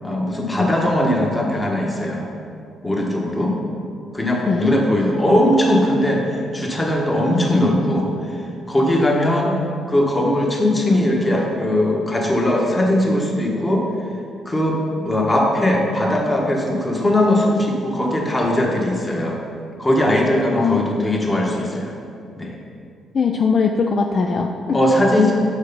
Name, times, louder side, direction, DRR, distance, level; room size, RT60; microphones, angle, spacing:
voice 1, 0.0-2.3 2.8-3.6 4.1-9.6 9.9-13.9 14.4-19.4 19.8-21.9 22.4-22.5 24.7-25.3, left 1 dB, 15° left, -1 dB, 1.2 m, -19 dB
voice 2, 23.1-24.8, left 5 dB, 45° left, 3 dB, 0.4 m, -20 dB
6.5 x 4.4 x 5.4 m, 2.4 s
cardioid pair, 90°, 0 cm